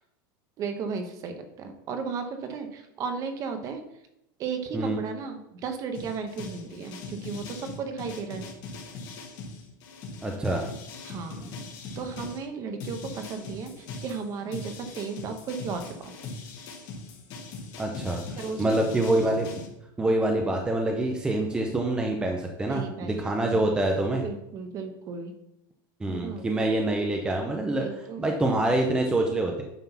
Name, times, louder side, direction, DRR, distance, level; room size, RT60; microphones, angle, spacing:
voice 1, 0.6-3.8 4.4-8.4 11.1-11.5 12.0-16.1 18.4-18.8 22.7-23.2 23.5-23.6 24.2-25.3 26.1-26.5 27.8-28.3, right 5 dB, 30° right, 6 dB, 1.0 m, -35 dB
sound 1, 5.9-12.4 12.8-19.7, left 3 dB, 40° left, 1.9 m, -40 dB
voice 2, 10.2-10.6 17.8-18.2 18.6-19.5 20.0-24.2 26.0-29.6, right 1 dB, 10° right, 2 dB, 0.7 m, -26 dB
9.2 x 3.8 x 5.9 m, 0.83 s
supercardioid pair, 160°, 11 cm